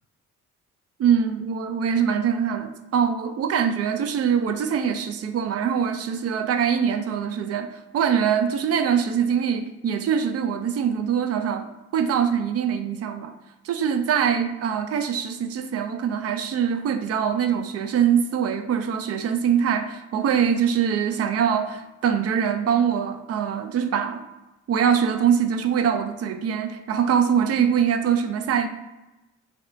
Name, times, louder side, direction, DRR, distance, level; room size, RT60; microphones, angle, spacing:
voice 1, 1.0-13.3 13.6-24.2 24.7-28.7, right 7 dB, 55° right, 8 dB, 0.4 m, -23 dB
3.2 x 2.7 x 2.6 m, 1.0 s
cardioid pair, 90°, 30 cm